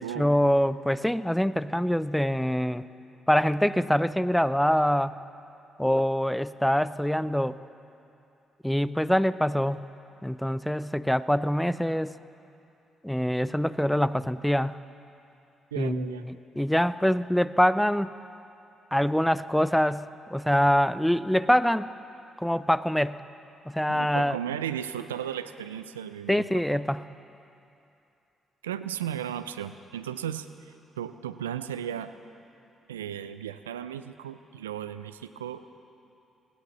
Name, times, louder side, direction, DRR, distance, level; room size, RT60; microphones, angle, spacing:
voice 1, 0.0-2.9 3.3-5.2 5.8-7.6 8.6-9.8 10.2-12.2 13.0-14.8 15.8-18.1 18.9-21.9 22.4-23.2 23.7-24.4 26.3-27.1, equal, 5° left, 16 dB, 0.5 m, -25 dB
voice 2, 15.7-16.2 23.9-26.8 28.6-30.5 31.0-32.1 32.9-35.7, right 10 dB, 85° right, 11 dB, 0.4 m, -35 dB
20.0 x 17.0 x 4.0 m, 2.7 s
hypercardioid pair, 45°, 0 cm